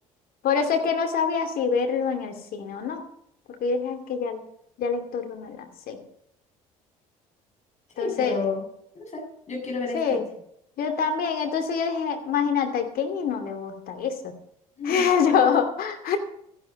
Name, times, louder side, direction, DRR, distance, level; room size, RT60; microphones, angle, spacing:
voice 1, 0.4-3.0 3.6-4.4 4.8-6.0 8.0-8.4 9.9-10.2 10.8-14.3 14.8-16.2, left 6 dB, 55° left, 6 dB, 2.6 m, -25 dB
voice 2, 8.0-8.6 9.0-10.2 14.8-15.1, left 3 dB, 40° left, 0 dB, 7.2 m, -31 dB
14.0 x 11.0 x 5.4 m, 0.73 s
hypercardioid pair, 60°, 18 cm